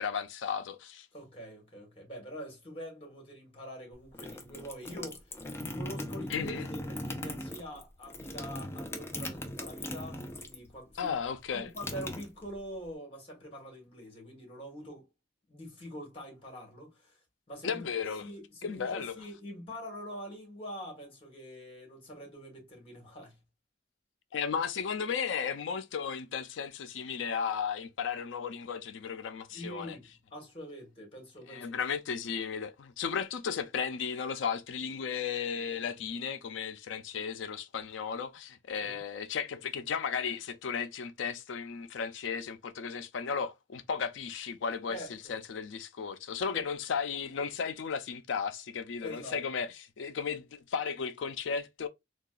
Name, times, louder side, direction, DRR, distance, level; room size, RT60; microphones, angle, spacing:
voice 1, 0.0-1.1 6.3-6.7 11.0-11.7 17.6-18.2 18.6-19.2 24.3-30.0 31.5-49.7 50.0-51.9, left 6 dB, 80° left, 0.4 m, -35 dB
voice 2, 1.1-5.3 5.7-11.1 11.5-15.1 15.5-17.2 17.5-17.8 18.2-23.4 29.5-31.7 38.8-39.0 44.9-45.3 46.5-46.6 49.0-49.4, equal, 30° left, 1.3 m, -45 dB
sound 1, 3.9-10.7 11.0-12.9, left 1 dB, 15° left, 0.4 m, -39 dB
3.7 x 2.3 x 2.3 m
head